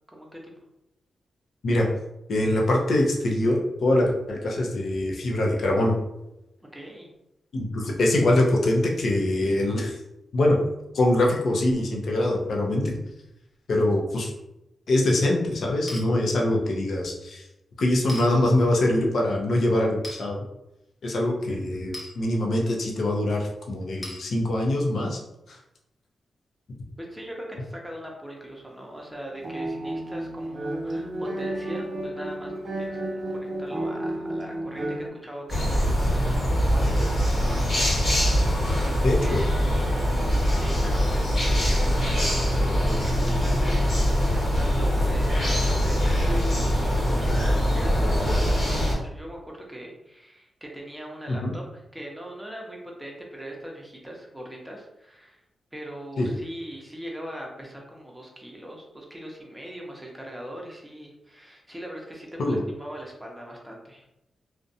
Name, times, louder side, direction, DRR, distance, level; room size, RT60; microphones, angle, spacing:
voice 1, 0.1-0.5 6.6-7.1 27.0-38.4 38.8-39.6 40.5-55.4 55.7-64.0, right 1 dB, 5° right, -1 dB, 0.7 m, -41 dB
voice 2, 2.3-6.0 7.5-10.0 10.3-10.6 10.9-13.0 13.7-14.3 14.9-17.4 17.8-20.5 21.0-25.2 25.5-25.6 39.0-39.5 51.4-51.5 56.2-56.3 62.4-62.6, left 1 dB, 70° left, -1 dB, 0.6 m, -23 dB
sound 1, 15.9-16.1 18.1-18.3 20.0-20.2 21.9-22.1 24.0-24.2, left 1 dB, 30° left, 0.6 m, -37 dB
sound 2, 29.3-35.1, right 1 dB, 45° right, 0.4 m, -32 dB
sound 3, 35.5-48.9, equal, 45° left, 1.2 m, -23 dB
2.5 x 2.1 x 2.6 m, 0.88 s
cardioid pair, 80°, 0 cm